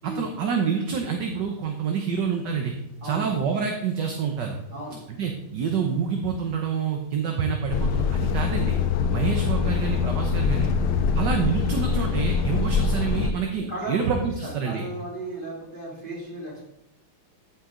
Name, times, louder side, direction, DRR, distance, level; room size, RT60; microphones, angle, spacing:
voice 1, 0.0-2.7 3.0-4.5 5.1-8.8 9.1-10.7 11.1-14.8, right 6 dB, 60° right, 3 dB, 1.4 m, -27 dB
voice 2, 4.7-5.0 12.4-12.6 13.5-14.1 14.6-16.6, right 1 dB, 20° right, -6 dB, 4.2 m, -35 dB
Truck, 7.7-13.3, left 6 dB, 65° left, 1.0 m, -24 dB
14.5 x 5.9 x 3.8 m, 0.84 s
omnidirectional pair, 2.4 m